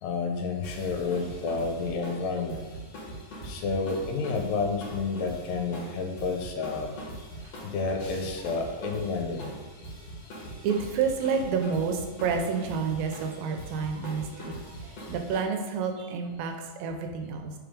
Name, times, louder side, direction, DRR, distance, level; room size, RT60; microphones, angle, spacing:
voice 1, 0.0-2.7 3.4-7.0 7.6-9.6, left 4 dB, 80° left, 2 dB, 2.3 m, -30 dB
sound 1, 0.6-15.4, equal, 55° left, 2.1 m, -42 dB
voice 2, 10.6-17.5, right 5 dB, 85° right, 4 dB, 2.4 m, -30 dB
5.3 x 3.6 x 5.0 m, 1.2 s
omnidirectional pair, 4.1 m